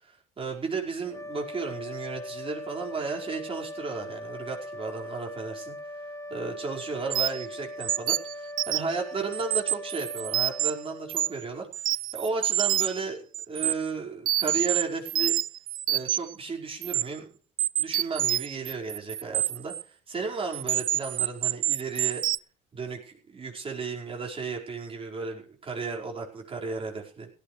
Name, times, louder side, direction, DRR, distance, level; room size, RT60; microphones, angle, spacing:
voice 1, 0.0-5.7 6.3-15.3 15.9-17.3 17.8-22.2 22.7-27.3, right 4 dB, 35° right, -1 dB, 5.2 m, -34 dB
sound 1, 1.0-11.7, left 1 dB, 15° left, 2.6 m, -40 dB
sound 2, 7.1-7.5 7.8-9.0 9.3-10.7 11.1-11.4 11.7-13.0 13.3-13.7 14.3-16.3 16.8-17.0 17.6-19.8 20.5-22.4, right 12 dB, 55° right, 0.6 m, -27 dB
17.0 x 14.5 x 3.4 m, 0.40 s
cardioid pair, 110°, 17 cm